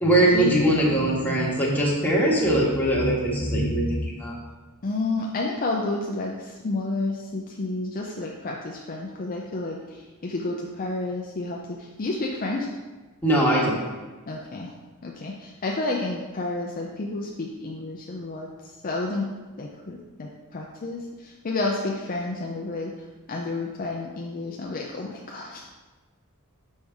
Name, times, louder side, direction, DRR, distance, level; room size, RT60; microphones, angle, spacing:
voice 1, 0.0-4.4 13.2-13.7, right 1 dB, 10° left, -5 dB, 1.4 m, -21 dB
voice 2, 4.8-6.3 6.6-9.8 10.2-11.6 12.0-12.7 14.3-14.7 15.0-18.5 18.8-19.3 19.6-22.9 23.3-25.8, left 2 dB, 40° left, -1 dB, 0.5 m, -30 dB
6.2 x 5.4 x 3.5 m, 1.2 s
head